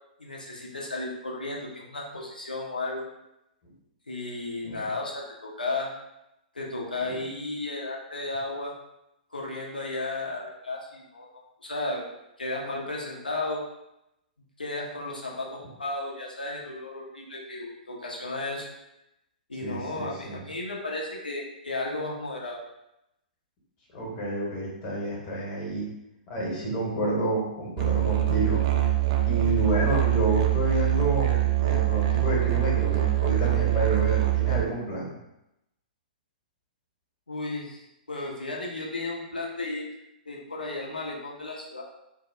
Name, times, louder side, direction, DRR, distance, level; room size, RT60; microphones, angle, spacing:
voice 1, 0.2-3.0 4.1-5.9 6.5-8.7 9.3-12.0 12.4-13.6 14.6-18.7 19.5-22.6 37.3-39.9 40.3-41.8, left 2 dB, 80° left, -2 dB, 0.7 m, -34 dB
voice 2, 19.6-20.4 23.9-25.9 26.3-28.6 29.3-35.2, right 1 dB, 30° left, -4 dB, 1.0 m, -29 dB
Musical instrument, 27.8-34.6, right 16 dB, 35° right, 0.3 m, -24 dB
2.7 x 2.0 x 3.7 m, 0.87 s
figure-of-eight pair, 110°, 5 cm